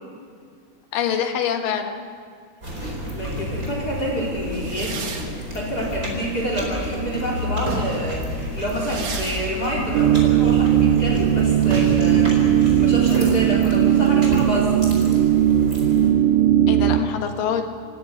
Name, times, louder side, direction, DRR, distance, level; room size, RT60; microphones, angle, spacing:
voice 1, 0.9-2.1 16.7-17.6, left 8 dB, 65° left, 4 dB, 3.0 m, -25 dB
sound 1, 2.6-16.1, left 1 dB, 20° right, 4.8 m, -31 dB
voice 2, 3.1-5.1 5.5-14.8, equal, 25° left, -2 dB, 4.2 m, -28 dB
sound 2, 4.5-7.0 7.4-15.0, right 4 dB, 50° right, 2.6 m, -34 dB
sound 3, 9.9-17.0, right 11 dB, 75° right, 1.8 m, -18 dB
26.5 x 16.0 x 8.8 m, 2.1 s
omnidirectional pair, 4.4 m